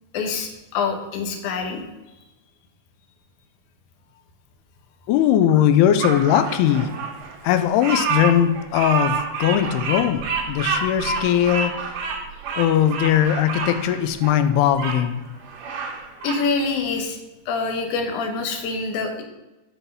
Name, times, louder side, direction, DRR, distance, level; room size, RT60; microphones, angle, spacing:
voice 1, 0.1-1.8 16.2-17.2 17.5-19.2, left 4 dB, 70° left, 2 dB, 2.0 m, -25 dB
voice 2, 5.1-6.9 7.4-11.9 12.6-15.2, left 10 dB, 90° left, 9 dB, 2.6 m, -19 dB
Bird vocalization bird call bird song, 6.0-15.0 15.4-16.5, right 5 dB, 85° right, 1.5 m, -28 dB
6.1 x 5.6 x 5.3 m, 1.0 s
omnidirectional pair, 4.5 m